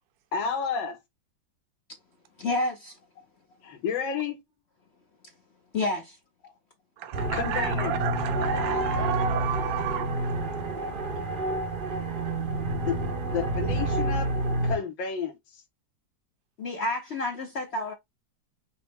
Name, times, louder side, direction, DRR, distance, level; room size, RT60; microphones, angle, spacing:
voice 1, 0.3-1.0 3.6-4.4 7.3-8.0 12.9-13.0 13.3-14.3 14.6-15.6, left 6 dB, 80° left, 1.8 m, -31 dB
voice 2, 2.4-3.0 5.7-6.2 16.6-17.9, left 2 dB, 65° left, 0.6 m, -29 dB
voice 3, 7.0-11.2, right 10 dB, 75° right, 1.4 m, -32 dB
sound 1, 7.1-14.8, right 1 dB, 50° right, 0.6 m, -29 dB
5.8 x 2.1 x 3.4 m
omnidirectional pair, 2.1 m